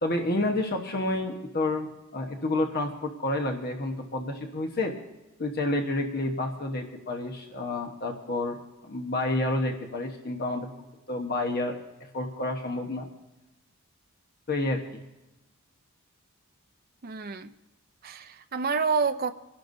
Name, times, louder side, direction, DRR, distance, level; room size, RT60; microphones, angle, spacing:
voice 1, 0.0-4.9 5.4-10.7 11.1-11.8 12.1-13.1 14.5-15.0, left 2 dB, 45° left, 1.1 m, -29 dB
voice 2, 17.0-17.5 18.0-19.3, right 5 dB, 40° right, 0.6 m, -28 dB
25.5 x 11.5 x 2.7 m
head